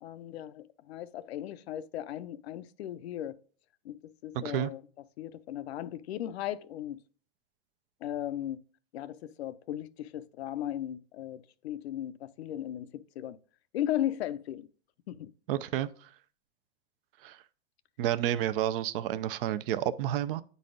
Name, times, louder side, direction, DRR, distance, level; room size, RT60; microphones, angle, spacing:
voice 1, 0.0-3.4 3.8-4.8 5.2-7.0 8.0-8.6 8.9-13.4 13.7-14.7 15.1-15.3, left 12 dB, 80° left, 0.6 m, -36 dB
voice 2, 4.3-4.7 15.5-16.1 17.2-17.4 18.0-20.4, right 12 dB, 60° right, 0.6 m, -30 dB
9.4 x 4.1 x 3.8 m
hypercardioid pair, 130°, 31 cm